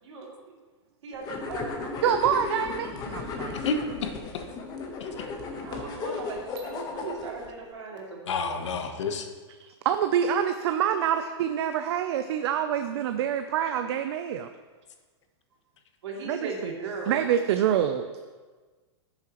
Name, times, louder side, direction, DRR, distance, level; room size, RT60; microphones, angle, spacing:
voice 1, 1.0-2.2 5.6-8.8 16.0-17.2, right 3 dB, 80° right, -2 dB, 2.7 m, -38 dB
sound 1, 1.2-7.5, left 4 dB, 25° left, 1.1 m, -35 dB
voice 2, 2.0-3.6 9.6-14.5 16.3-16.5 17.1-18.0, right 9 dB, 65° right, 8 dB, 0.5 m, -26 dB
voice 3, 3.5-4.1 5.0-5.1 8.3-9.3, left 4 dB, 80° left, 6 dB, 1.1 m, -29 dB
13.0 x 7.1 x 3.0 m, 1.4 s
hypercardioid pair, 140°, 15 cm